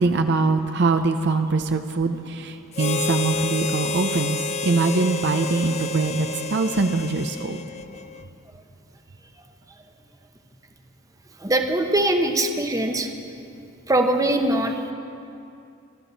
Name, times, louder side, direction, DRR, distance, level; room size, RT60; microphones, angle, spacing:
voice 1, 0.0-7.6, right 3 dB, 60° right, 7 dB, 0.6 m, -23 dB
Harmonica, 2.7-8.2, left 3 dB, 30° left, 0.4 m, -29 dB
voice 2, 11.4-13.1 13.9-14.9, right 1 dB, 15° right, 4 dB, 0.9 m, -22 dB
25.0 x 13.5 x 4.1 m, 2.6 s
head